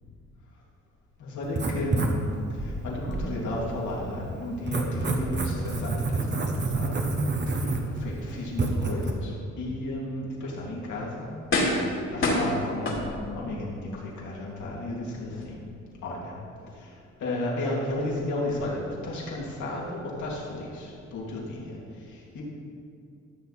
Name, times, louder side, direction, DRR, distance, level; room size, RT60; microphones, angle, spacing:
voice 1, 1.2-7.1 7.5-11.3 11.7-15.6 16.0-16.4 16.7-22.4, left 1 dB, 75° left, -4 dB, 2.9 m, -33 dB
Writing, 1.4-9.1, right 2 dB, 35° right, 1.2 m, -29 dB
sound 1, 10.6-10.7 11.5-11.9 12.2-13.5 14.0-14.1, left 2 dB, 45° left, 2.5 m, -26 dB
14.0 x 6.9 x 4.3 m, 2.5 s
cardioid pair, 90°, 30 cm